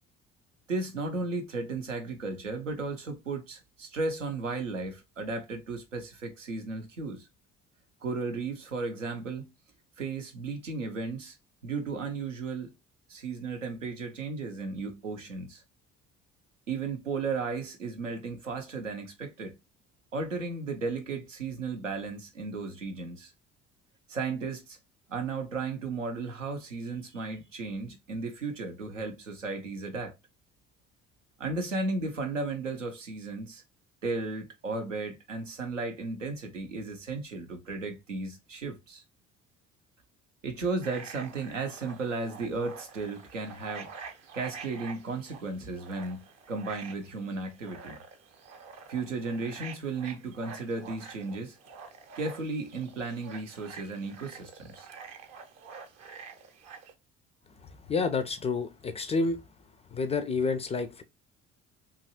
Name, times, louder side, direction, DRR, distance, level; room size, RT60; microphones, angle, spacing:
voice 1, 0.7-7.3 8.0-9.5 10.0-11.4 11.6-12.8 13.1-15.6 16.7-19.6 20.1-23.3 24.1-24.8 25.1-30.1 31.4-33.6 34.0-39.0 40.4-43.9 44.3-48.0 48.9-51.6 52.2-54.9, right 3 dB, 85° right, 0.6 m, -35 dB
sound 1, 40.8-56.9, right 5 dB, 45° right, 0.7 m, -47 dB
voice 2, 57.6-59.4 59.9-61.0, left 4 dB, 20° left, 0.3 m, -29 dB
2.8 x 2.4 x 2.6 m
figure-of-eight pair, 50°, 37 cm